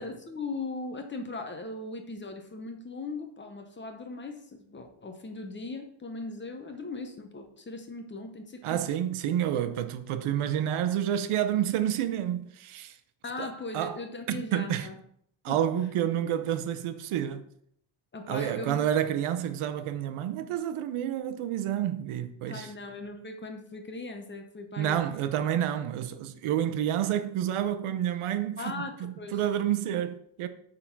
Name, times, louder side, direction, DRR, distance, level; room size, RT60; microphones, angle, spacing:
voice 1, 0.0-4.4 4.7-8.8 13.2-15.0 15.5-15.6 18.1-18.8 22.5-25.0 28.6-29.4, left 3 dB, 25° left, 0.8 m, -39 dB
voice 2, 8.6-13.0 13.4-14.0 14.3-14.9 15.4-17.4 18.3-22.7 24.8-30.5, right 10 dB, 85° right, 0.8 m, -29 dB
8.4 x 3.8 x 4.6 m
cardioid pair, 150°, 49 cm